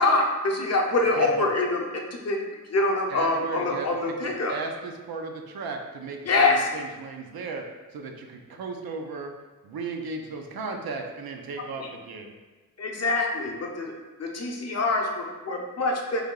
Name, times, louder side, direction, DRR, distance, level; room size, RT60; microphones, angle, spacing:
voice 1, 0.0-2.4 2.7-4.6 6.2-6.7 11.8-11.9 12.8-13.9 14.2-16.2, left 2 dB, 45° left, 0 dB, 0.6 m, -25 dB
voice 2, 1.2-1.5 3.1-4.1 4.5-7.7 7.9-9.3 9.6-12.3, right 4 dB, 85° right, 3 dB, 0.5 m, -35 dB
3.3 x 2.7 x 3.7 m, 1.2 s
wide cardioid pair, 105°, 35 cm